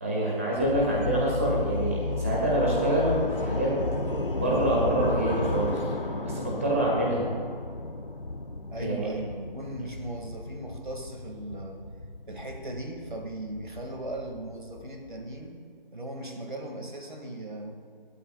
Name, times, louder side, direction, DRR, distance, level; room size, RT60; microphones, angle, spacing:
voice 1, 0.0-3.7 4.3-5.8 6.2-7.2 8.8-8.9, right 1 dB, 15° right, -5 dB, 2.1 m, -26 dB
sound 1, 0.6-15.5, left 2 dB, 65° left, 1.0 m, -33 dB
voice 2, 8.7-11.8 12.3-15.6 15.9-17.8, right 1 dB, 55° right, 2 dB, 2.3 m, -37 dB
27.5 x 12.5 x 2.5 m, 2.2 s
figure-of-eight pair, 165°, 29 cm